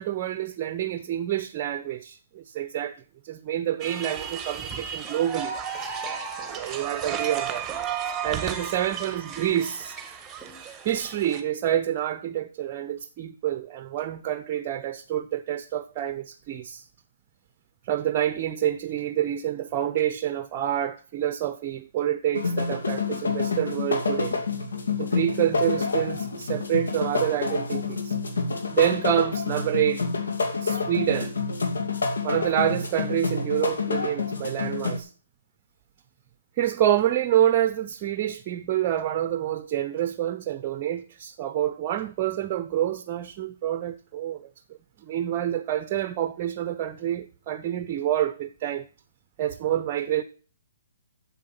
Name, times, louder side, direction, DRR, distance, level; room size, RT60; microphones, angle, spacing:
voice 1, 0.0-3.0 3.2-5.6 6.5-7.6 8.2-10.0 10.8-16.8 17.8-24.3 25.0-28.2 28.7-30.1 30.6-31.3 32.2-35.1 36.6-44.5 45.0-48.9 49.4-50.2, right 11 dB, 35° right, 0.7 m, -27 dB
sound 1, 3.8-11.4, right 7 dB, 15° right, 1.6 m, -34 dB
sound 2, 22.3-35.0, left 4 dB, 75° left, 2.5 m, -28 dB
8.5 x 7.2 x 7.6 m
hypercardioid pair, 130°, 0 cm